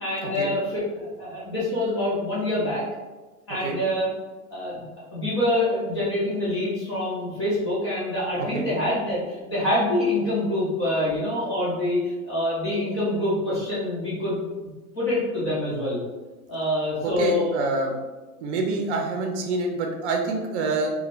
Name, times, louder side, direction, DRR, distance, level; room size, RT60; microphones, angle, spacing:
voice 1, 0.0-2.8 3.5-4.1 4.5-4.8 5.1-14.4 14.9-16.0 16.5-17.6, left 1 dB, 20° left, -8 dB, 0.3 m, -26 dB
voice 2, 17.0-17.9 18.4-20.9, right 3 dB, 50° right, 2 dB, 0.6 m, -27 dB
2.6 x 2.5 x 3.0 m, 1.2 s
hypercardioid pair, 145°, 44 cm